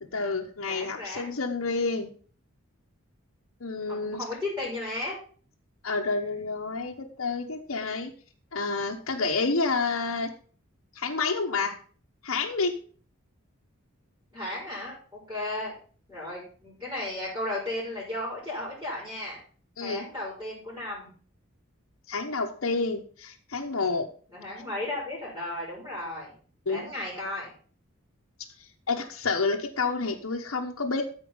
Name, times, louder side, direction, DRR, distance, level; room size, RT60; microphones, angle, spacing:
voice 1, 0.0-2.1 3.6-4.2 5.8-8.1 8.5-10.3 10.9-11.8 12.2-12.7 19.8-20.1 22.1-24.1 26.7-26.8 28.9-31.0, left 4 dB, 75° left, 0 dB, 1.0 m, -29 dB
voice 2, 0.7-1.3 3.9-5.2 14.3-15.7 16.1-19.4 19.8-21.1 24.3-26.3 26.7-27.5, left 1 dB, 10° right, -7 dB, 5.0 m, -34 dB
13.5 x 4.6 x 5.4 m, 0.43 s
head